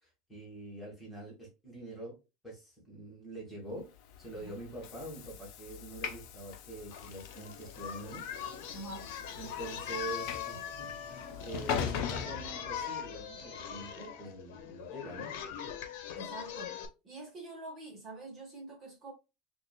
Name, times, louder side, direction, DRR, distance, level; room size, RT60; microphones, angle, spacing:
voice 1, 0.0-2.2 2.4-3.9 4.2-8.2 9.4-15.3, right 2 dB, 5° left, 2.0 m, -45 dB
Train / Sliding door, 4.0-13.3, left 7 dB, 55° left, 0.8 m, -41 dB
Singing, 6.9-16.9, left 9 dB, 80° left, 1.1 m, -42 dB
voice 2, 8.7-9.1 16.1-16.8 17.0-19.1, right 2 dB, 25° right, 1.5 m, -45 dB
Wind instrument woodwind instrument, 9.2-14.5, right 3 dB, 75° right, 1.0 m, -55 dB
6.6 x 2.8 x 2.2 m
cardioid pair, 170°, 0 cm